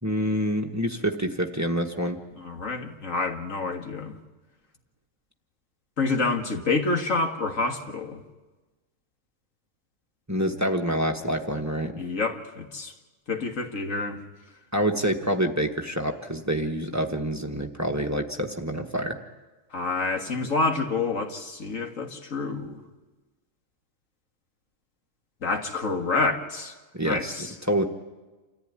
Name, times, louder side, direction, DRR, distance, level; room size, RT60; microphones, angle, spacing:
voice 1, 0.0-2.2 10.3-11.9 14.7-19.2 26.9-27.3 27.7-27.8, equal, 15° right, 1.2 m, -27 dB
voice 2, 2.4-4.2 6.0-8.2 12.0-12.9 13.3-14.2 19.7-22.8 25.4-26.7 27.0-27.5, left 3 dB, 85° left, 2.2 m, -28 dB
28.0 x 14.5 x 9.6 m
omnidirectional pair, 1.3 m